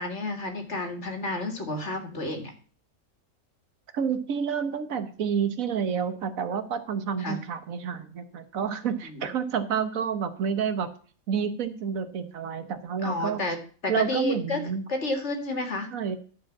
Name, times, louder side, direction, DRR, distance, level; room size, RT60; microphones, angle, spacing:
voice 1, 0.0-2.5 7.2-7.4 9.1-9.3 13.0-13.6 13.8-15.9, left 2 dB, 55° left, 5 dB, 2.2 m, -31 dB
voice 2, 3.9-10.9 11.3-13.4 13.9-14.8 15.9-16.2, right 7 dB, 75° right, 10 dB, 1.4 m, -29 dB
11.5 x 5.0 x 7.2 m, 0.41 s
omnidirectional pair, 1.5 m